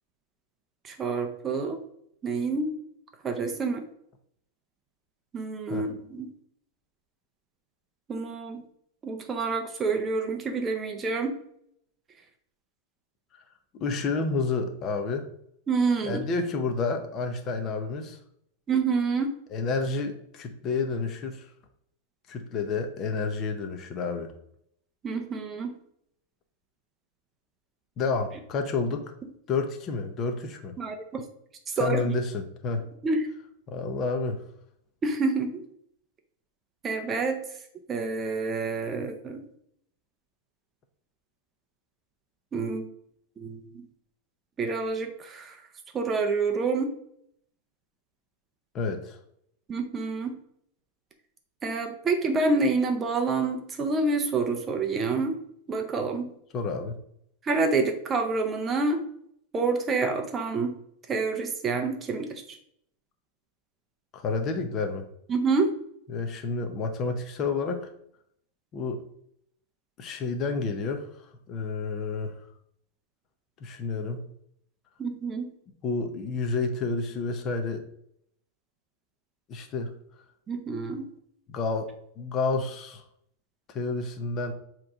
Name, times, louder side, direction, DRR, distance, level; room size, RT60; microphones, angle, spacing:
voice 1, 0.8-1.8 2.2-2.7 3.2-3.8 5.3-6.3 8.1-8.6 9.0-11.4 15.7-16.2 18.7-19.4 25.0-25.7 30.8-31.2 31.8-32.0 33.0-33.2 35.0-35.5 36.8-37.4 37.9-39.5 42.5-42.8 43.4-43.9 44.6-45.6 45.9-46.9 49.7-50.4 51.6-55.4 55.7-56.3 57.4-59.0 59.5-60.7 61.1-62.6 65.3-65.7 75.0-75.5 80.5-81.1, right 4 dB, 15° right, 5 dB, 0.6 m, -27 dB
voice 2, 13.7-15.3 16.0-18.2 19.5-21.4 22.3-24.3 28.0-29.1 29.5-30.8 31.8-32.9 33.7-34.4 48.7-49.2 56.5-56.9 64.1-65.1 66.1-67.9 68.7-69.0 70.0-71.1 71.5-72.4 73.6-74.2 75.8-77.8 79.5-79.9 81.5-81.9 82.2-83.0 83.7-84.5, left 4 dB, 25° left, 5 dB, 0.7 m, -30 dB
7.6 x 3.0 x 4.8 m, 0.69 s
supercardioid pair, 175°, 0 cm